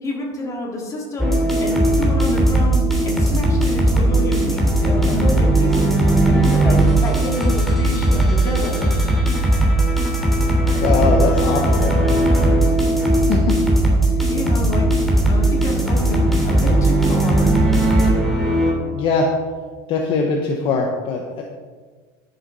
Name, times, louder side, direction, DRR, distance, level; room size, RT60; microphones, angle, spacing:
voice 1, 0.0-8.9 14.1-17.6, left 2 dB, 30° left, -2 dB, 3.4 m, -29 dB
sound 1, 1.2-18.7, right 1 dB, ahead, 2.9 m, -17 dB
voice 2, 10.8-12.0 13.3-13.6 18.9-19.3 19.9-21.4, left 4 dB, 50° left, 1 dB, 1.3 m, -21 dB
12.5 x 7.3 x 5.6 m, 1.5 s
supercardioid pair, 130°, 11 cm